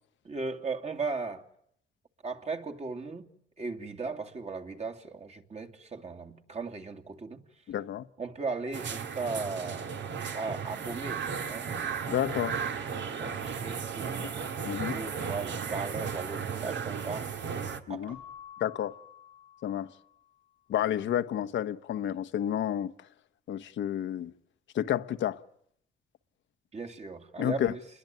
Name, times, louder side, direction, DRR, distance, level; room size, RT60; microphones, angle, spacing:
voice 1, 0.2-1.4 2.2-3.3 3.6-7.4 8.2-9.9 10.3-11.7 13.0-14.3 14.9-17.3 17.9-18.2 26.7-27.8, right 4 dB, 35° right, 2.7 m, -37 dB
voice 2, 7.7-8.1 12.1-12.6 14.2-14.3 14.6-15.0 17.9-18.2 18.6-19.0 19.6-19.9 20.7-22.9 23.5-24.3 24.7-25.4 27.4-27.7, left 10 dB, 70° left, 1.1 m, -30 dB
sound 1, 8.7-17.8, right 6 dB, 65° right, 2.3 m, -35 dB
Keyboard (musical) / Bell, 18.1-20.5, left 8 dB, 80° right, 4.6 m, -51 dB
29.0 x 21.5 x 9.2 m
cardioid pair, 90°, 20 cm